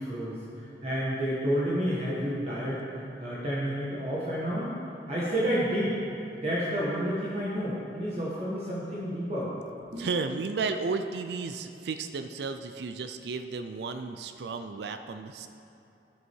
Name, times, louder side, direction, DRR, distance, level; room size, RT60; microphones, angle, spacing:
voice 1, 0.0-4.7 5.1-6.0 6.3-9.5 9.9-10.1, equal, 35° right, -8 dB, 1.4 m, -30 dB
voice 2, 10.0-15.5, right 4 dB, 65° right, 8 dB, 0.4 m, -33 dB
13.0 x 6.3 x 4.6 m, 2.8 s
head